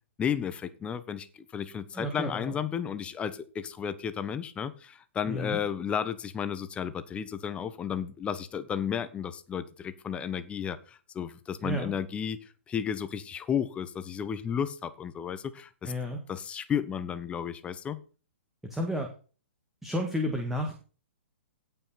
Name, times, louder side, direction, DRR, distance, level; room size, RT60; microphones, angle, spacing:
voice 1, 0.2-1.3 1.5-12.4 12.7-15.9 16.3-18.0, left 8 dB, 15° left, 1.0 m, -33 dB
voice 2, 1.9-2.6 5.2-5.6 11.6-11.9 15.8-16.2 18.7-19.1 19.8-20.8, equal, 5° right, 1.8 m, -32 dB
17.0 x 5.7 x 4.2 m
hypercardioid pair, 120°, 7 cm